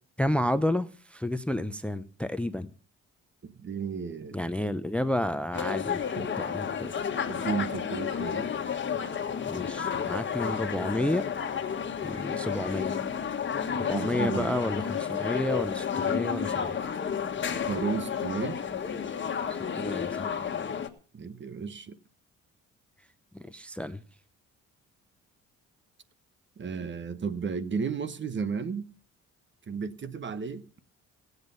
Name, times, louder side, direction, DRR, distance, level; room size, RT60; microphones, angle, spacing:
voice 1, 0.2-2.7 4.3-6.0 6.4-6.9 9.5-11.2 12.0-12.9 13.7-16.8 19.5-20.4 23.3-24.0, left 1 dB, 5° left, 0.6 m, -31 dB
voice 2, 3.4-4.4 6.2-6.3 7.3-8.5 13.9-14.6 17.7-18.6 21.1-22.0 26.6-28.9 29.7-30.8, right 5 dB, 40° right, 1.1 m, -33 dB
sound 1, 5.5-20.9, left 7 dB, 40° left, 1.5 m, -31 dB
17.5 x 8.2 x 5.4 m
cardioid pair, 90°, 30 cm